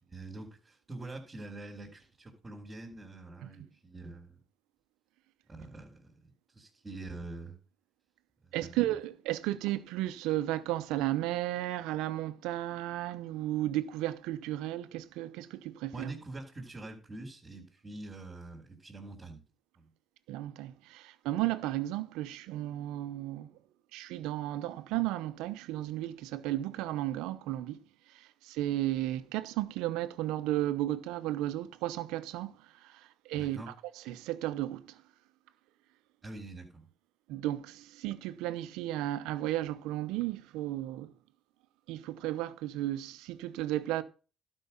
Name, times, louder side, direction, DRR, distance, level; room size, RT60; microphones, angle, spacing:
voice 1, 0.0-4.4 5.5-7.6 8.4-8.8 15.9-19.4 19.8-19.9 33.3-33.7 36.2-36.8, right 2 dB, 25° right, 3.3 m, -45 dB
voice 2, 8.5-16.1 20.3-23.6 23.9-35.0 37.3-41.1 41.9-44.0, right 15 dB, 90° right, 0.8 m, -34 dB
12.0 x 5.4 x 5.5 m
supercardioid pair, 70°, 0 cm